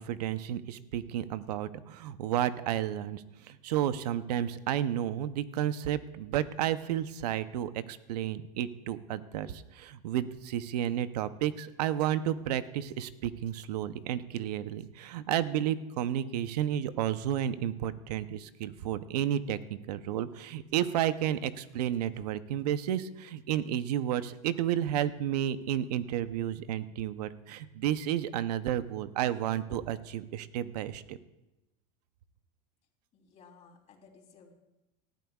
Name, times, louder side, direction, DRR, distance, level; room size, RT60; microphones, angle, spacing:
voice 1, 0.0-31.2, right 11 dB, 85° right, 13 dB, 0.7 m, -32 dB
voice 2, 33.1-34.5, left 5 dB, 35° left, -1 dB, 3.4 m, -57 dB
19.0 x 13.0 x 2.4 m, 0.95 s
supercardioid pair, 125°, 20 cm